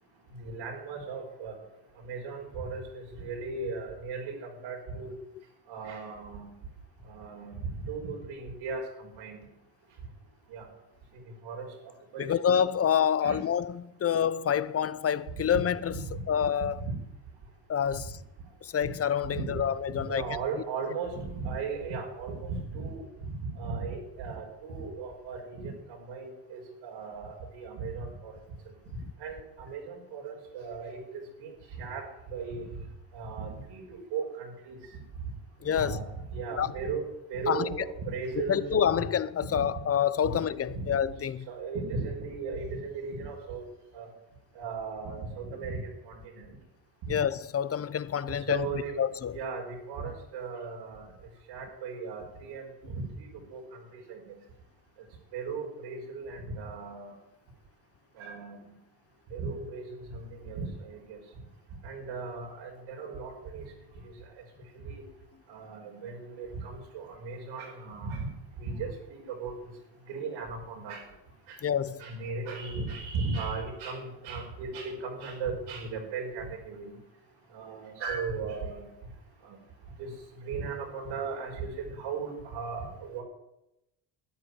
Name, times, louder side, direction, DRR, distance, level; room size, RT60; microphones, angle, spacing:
voice 1, 0.4-1.5 2.0-4.3 4.6-5.1 5.7-6.5 7.1-8.8 9.2-9.4 10.5-10.7 11.4-11.7 12.1-12.3 13.2-13.4 15.9-16.0 16.8-16.9 18.8-18.9 19.3-19.6 20.1-23.0 23.4-25.8 26.1-28.3 29.2-31.0 31.4-31.5 31.8-32.0 32.3-32.6 33.1-33.8 34.1-34.8 35.8-37.0 37.3-38.8 39.5-39.6 40.2-40.4 40.7-40.9 41.5-43.6 43.9-44.1 44.6-45.8 46.1-46.5 47.0-47.1 48.5-49.0 49.3-51.1 51.5-53.0 53.5-53.6 54.1-54.2 55.3-57.1 58.2-58.6 59.3-61.2 61.8-63.6 64.8-65.0 65.5-68.3 68.6-69.5 70.1-71.0 71.5-71.6 72.0-76.9 77.5-78.9 79.5-79.6 80.0-80.1 80.4-83.2, right 4 dB, 80° right, 5.4 m, -36 dB
voice 2, 12.2-16.0 16.3-16.8 17.7-18.2 18.6-20.2 29.0-29.1 35.6-36.0 36.6-36.7 37.5-37.6 38.5-41.5 47.1-48.7 49.0-49.3 71.6-72.0, left 8 dB, 30° left, 0.8 m, -27 dB
12.5 x 10.0 x 9.5 m
supercardioid pair, 85°, 45 cm